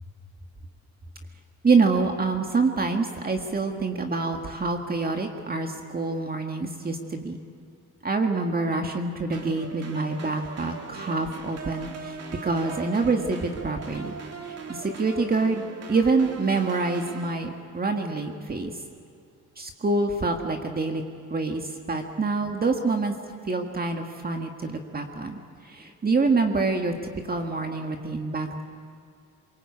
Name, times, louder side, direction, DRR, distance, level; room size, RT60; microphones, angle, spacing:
voice 1, 1.6-7.4 8.0-12.2 12.4-14.1 14.5-18.7 19.6-21.0 21.3-21.6 21.9-23.1 23.5-25.4 25.7-26.9 27.3-28.6, right 3 dB, 30° right, 3 dB, 1.9 m, -26 dB
sound 1, 9.3-17.3, right 5 dB, 55° right, 2.8 m, -40 dB
23.5 x 23.0 x 8.6 m, 2.4 s
cardioid pair, 90°, 30 cm